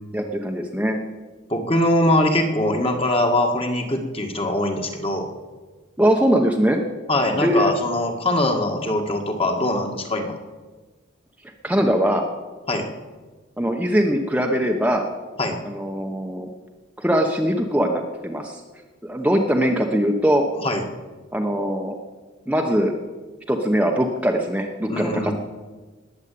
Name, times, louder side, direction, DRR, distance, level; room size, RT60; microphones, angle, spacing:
voice 1, 0.1-1.0 6.0-6.8 7.4-7.7 11.6-12.2 13.6-15.0 15.6-16.5 17.0-18.6 19.0-20.4 21.3-22.0 22.5-22.9 23.5-25.3, equal, 5° right, 2 dB, 1.0 m, -21 dB
voice 2, 1.5-5.3 7.1-10.3 12.7-12.9 15.4-15.6 20.6-20.8 24.9-25.3, left 1 dB, 30° left, 4 dB, 1.9 m, -22 dB
19.5 x 8.2 x 8.6 m, 1.3 s
head